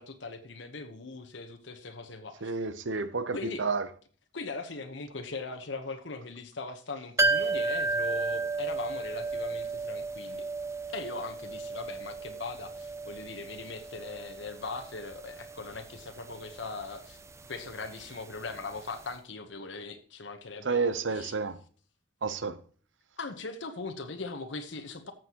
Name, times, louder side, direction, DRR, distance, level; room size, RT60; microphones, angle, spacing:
voice 1, 0.0-2.5 2.9-3.0 3.3-3.6 4.3-10.4 10.9-17.2 17.5-20.9 21.1-21.3 23.2-25.1, left 3 dB, 70° left, 1.0 m, -40 dB
voice 2, 2.4-3.9 20.6-21.6 22.2-22.6, right 4 dB, 80° right, 0.8 m, -30 dB
sound 1, 7.2-18.8 19.0-19.1, right 3 dB, 15° right, 0.5 m, -34 dB
14.0 x 7.6 x 3.0 m
head